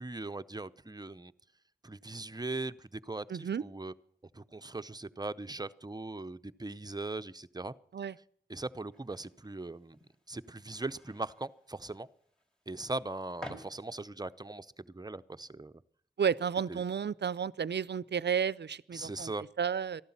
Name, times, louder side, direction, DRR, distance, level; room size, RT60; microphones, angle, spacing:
voice 1, 0.0-1.3 1.8-3.9 4.3-7.7 8.5-10.0 10.3-12.1 12.7-15.7 16.7-16.8 18.9-19.5, right 2 dB, 20° right, 0.7 m, -40 dB
voice 2, 3.3-3.6 7.9-8.1 16.2-19.3 19.6-20.0, right 7 dB, 70° right, 0.5 m, -32 dB
Moving Around Noise, 8.9-14.3, equal, 5° left, 3.9 m, -52 dB
14.5 x 12.0 x 7.3 m
wide cardioid pair, 50°, 18 cm